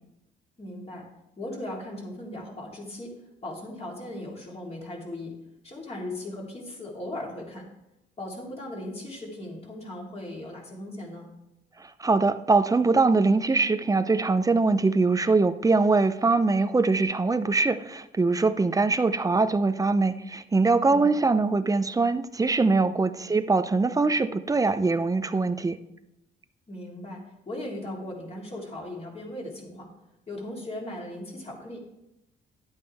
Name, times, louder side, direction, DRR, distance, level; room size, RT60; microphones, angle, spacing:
voice 1, 0.6-1.0 1.4-3.1 3.4-5.4 5.6-7.7 8.2-11.3 20.8-21.1 22.8-23.0 26.7-29.9 30.3-31.8, left 1 dB, 30° left, 3.4 m, -38 dB
voice 2, 11.8-25.8, right 3 dB, 15° right, 0.5 m, -23 dB
11.5 x 8.5 x 3.4 m
cardioid pair, 90°, 20 cm